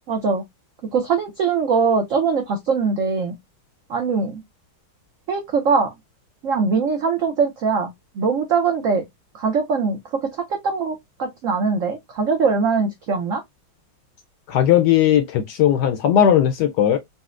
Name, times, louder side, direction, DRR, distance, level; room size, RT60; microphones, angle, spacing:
voice 1, 0.1-0.4 0.9-3.4 3.9-4.4 5.3-5.9 6.4-9.0 9.3-13.4, right 5 dB, 75° right, 0.7 m, -22 dB
voice 2, 14.5-17.0, left 10 dB, 75° left, 1.0 m, -17 dB
4.0 x 2.1 x 2.4 m
omnidirectional pair, 2.1 m